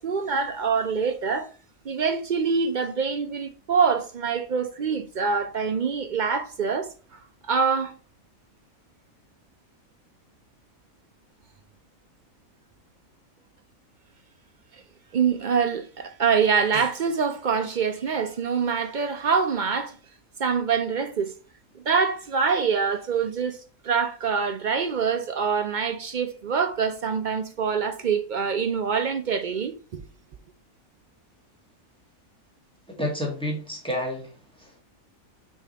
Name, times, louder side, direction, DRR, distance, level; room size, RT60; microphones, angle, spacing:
voice 1, 0.0-1.5 1.8-6.9 7.4-7.9 15.1-20.0 20.4-21.3 21.9-30.0, right 6 dB, 60° right, 0.5 m, -25 dB
voice 2, 33.0-34.8, left 1 dB, 5° left, 1.8 m, -30 dB
6.2 x 3.7 x 4.3 m
omnidirectional pair, 1.5 m